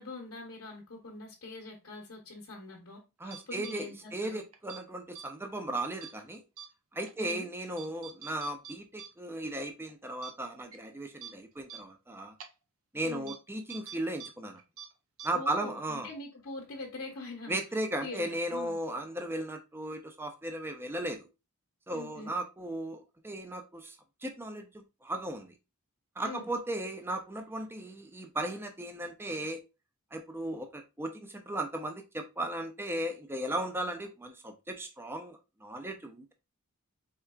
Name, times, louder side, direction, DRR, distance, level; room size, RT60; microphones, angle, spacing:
voice 1, 0.0-4.4 7.2-7.5 13.0-13.3 15.3-17.6 18.0-18.7 21.9-22.3 26.2-26.5, left 2 dB, 60° left, 1.0 m, -43 dB
voice 2, 3.2-6.4 6.9-12.3 12.9-14.6 15.2-16.1 17.5-21.3 21.9-24.0 24.2-25.5 26.2-29.6 30.1-36.3, right 1 dB, 10° right, 0.4 m, -36 dB
sound 1, 3.3-3.8 4.5-4.8 5.2-5.3 6.0-6.2 6.6-6.7 7.1-7.2 7.8-9.1 9.4-9.5 9.9-10.0 10.2-10.3 10.7-10.8 11.2-11.3 11.7-11.8 12.4-12.5 13.3-13.4 13.7-14.3 14.6-14.9 15.2-15.3, right 8 dB, 70° right, 0.7 m, -45 dB
4.4 x 3.5 x 2.3 m
head